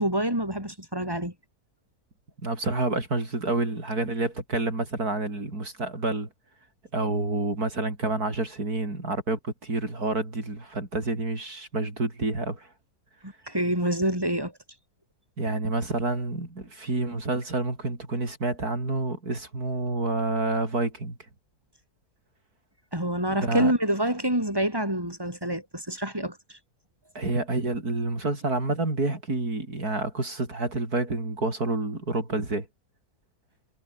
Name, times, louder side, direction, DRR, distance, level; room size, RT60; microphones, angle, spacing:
voice 1, 0.0-1.3 13.2-14.5 22.9-26.4, right 1 dB, 15° right, 7.8 m, -27 dB
voice 2, 2.4-6.3 6.9-12.7 15.4-21.2 23.3-23.7 27.1-32.7, right 2 dB, 80° right, 5.9 m, -28 dB
omnidirectional pair, 1.6 m